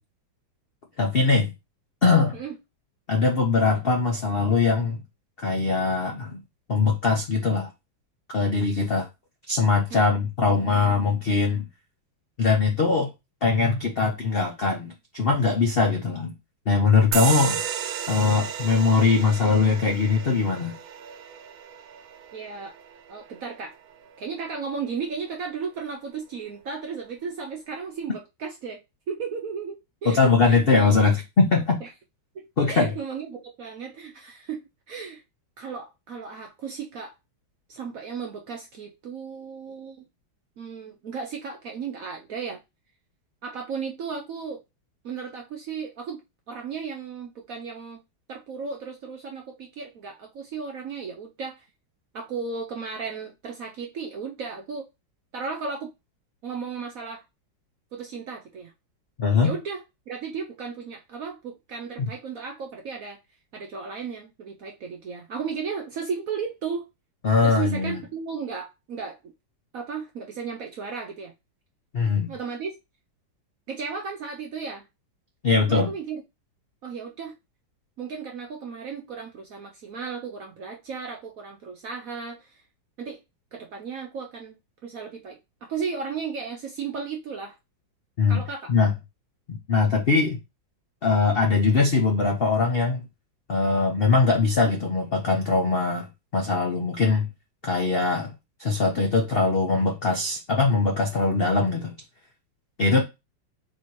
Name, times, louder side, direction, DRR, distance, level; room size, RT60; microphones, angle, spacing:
voice 1, 1.0-1.5 2.0-2.4 3.1-5.0 5.4-6.4 6.7-7.7 8.3-9.1 9.5-11.6 12.4-13.1 13.4-16.3 16.7-17.6 18.1-20.7 30.1-31.8 32.6-32.9 59.2-59.5 67.2-68.0 71.9-72.3 75.4-75.9 88.2-88.4 88.7-88.9 89.5-90.4 91.0-93.1 93.5-97.3 97.6-98.3 98.6-101.9 102.8-103.0, left 4 dB, 70° left, 0.5 m, -21 dB
sound 1, 17.1-24.2, right 9 dB, 85° right, 1.4 m, -33 dB
voice 2, 22.3-22.7 23.1-23.7 24.2-28.8 29.1-31.0 31.8-31.9 32.3-35.2 35.6-37.1 37.7-40.0 40.6-42.6 43.4-44.6 45.0-46.2 46.5-48.0 48.3-51.7 52.1-54.9 55.3-55.9 56.4-57.2 57.9-58.7 59.4-63.2 63.5-66.9 67.4-69.3 69.7-71.3 72.3-72.8 73.7-74.8 75.7-76.2 76.8-77.4 78.0-82.6 83.0-83.2 83.5-84.6 84.8-87.6 88.3-88.7 102.9-103.0, right 5 dB, 65° right, 0.8 m, -35 dB
4.2 x 2.8 x 4.6 m
omnidirectional pair, 2.1 m